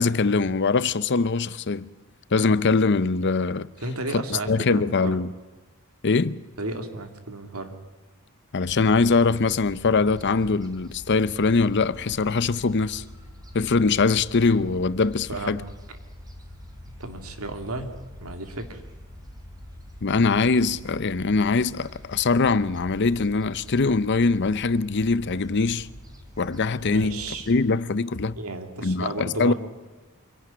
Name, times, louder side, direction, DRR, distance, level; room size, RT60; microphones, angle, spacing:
voice 1, 0.0-1.9 2.3-3.7 4.1-4.2 4.5-5.3 6.0-6.4 8.5-13.0 13.5-15.6 20.0-25.9 26.4-27.2 27.5-28.4 28.8-29.5, left 4 dB, 55° left, 0.7 m, -22 dB
voice 2, 3.8-5.2 6.6-7.7 15.3-15.6 17.0-17.9 18.2-18.8 26.9-27.5 28.3-29.5, right 2 dB, 90° right, 2.5 m, -33 dB
Gull seagull, 8.6-27.6, left 1 dB, 20° right, 3.1 m, -44 dB
25.0 x 11.5 x 9.9 m
head